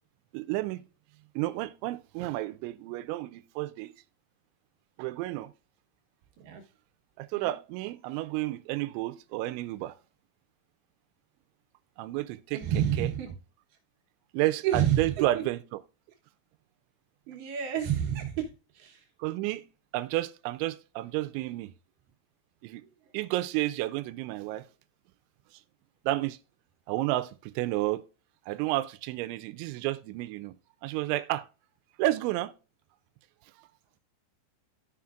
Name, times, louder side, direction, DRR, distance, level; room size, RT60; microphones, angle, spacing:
voice 1, 0.3-0.8 1.4-3.9 5.0-5.5 7.2-9.9 12.0-12.6 13.0-13.1 14.3-15.6 19.2-19.6 19.9-21.7 22.6-22.8 23.1-24.6 26.1-26.4 26.9-28.0 28.5-30.5 30.8-31.5 32.0-32.5, right 16 dB, 90° right, 2.9 m, -31 dB
voice 2, 12.5-13.4 14.6-15.1 17.3-18.5 18.7-19.0, right 10 dB, 70° right, 2.8 m, -29 dB
13.5 x 5.7 x 2.4 m
omnidirectional pair, 5.2 m